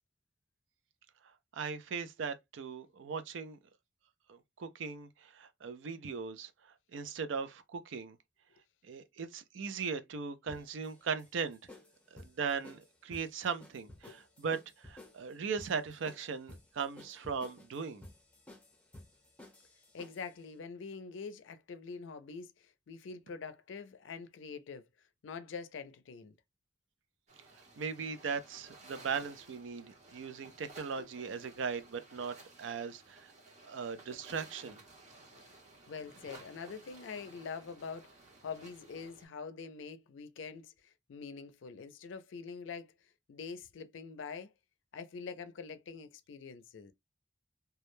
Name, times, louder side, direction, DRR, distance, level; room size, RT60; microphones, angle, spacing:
voice 1, 1.5-3.6 4.3-6.5 6.9-8.2 8.8-11.6 12.1-18.0 27.8-33.3 33.6-34.8, right 5 dB, 90° right, 0.4 m, -38 dB
sound 1, 10.5-20.4, left 1 dB, 5° left, 0.8 m, -55 dB
voice 2, 19.9-24.9 25.2-26.3 35.4-35.5 35.9-38.1 38.4-42.9 43.3-44.5 44.9-46.9, left 5 dB, 90° left, 0.4 m, -45 dB
sound 2, 27.3-39.2, right 2 dB, 40° right, 0.8 m, -56 dB
2.2 x 2.1 x 3.0 m
head